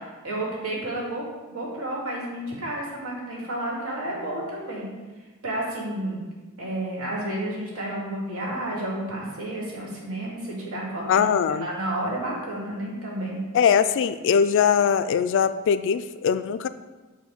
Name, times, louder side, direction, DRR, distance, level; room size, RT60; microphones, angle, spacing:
voice 1, 0.2-4.9 5.4-6.3 6.6-11.3 11.6-13.5, right 1 dB, 80° right, -4 dB, 2.1 m, -31 dB
voice 2, 11.1-11.7 13.5-16.7, left 7 dB, 60° left, 12 dB, 0.3 m, -21 dB
7.7 x 2.6 x 5.8 m, 1.2 s
head